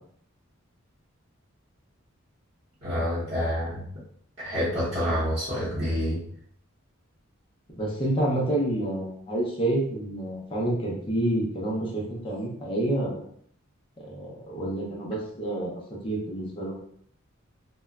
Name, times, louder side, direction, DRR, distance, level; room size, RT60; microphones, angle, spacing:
voice 1, 2.8-3.8 4.4-6.2, equal, 30° right, -13 dB, 0.9 m, -27 dB
voice 2, 7.7-13.3 14.0-16.7, right 1 dB, 25° left, -4 dB, 0.6 m, -28 dB
2.8 x 2.2 x 2.3 m, 0.63 s
head